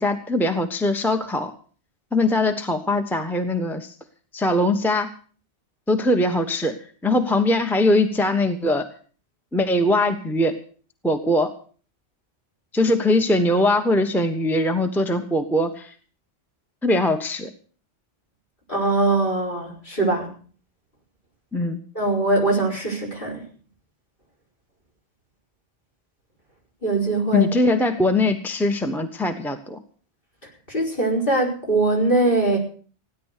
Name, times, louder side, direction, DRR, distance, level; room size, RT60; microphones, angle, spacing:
voice 1, 0.0-1.5 2.1-3.9 4.3-5.1 5.9-6.8 7.0-8.8 9.5-10.5 11.0-11.5 12.7-15.9 16.8-17.5 21.5-21.8 27.3-29.8, left 1 dB, ahead, 6 dB, 1.1 m, -21 dB
voice 2, 18.7-20.3 21.9-23.4 26.8-27.5 30.7-32.6, right 2 dB, 45° left, 1 dB, 5.1 m, -21 dB
16.5 x 10.5 x 6.6 m, 0.42 s
omnidirectional pair, 1.2 m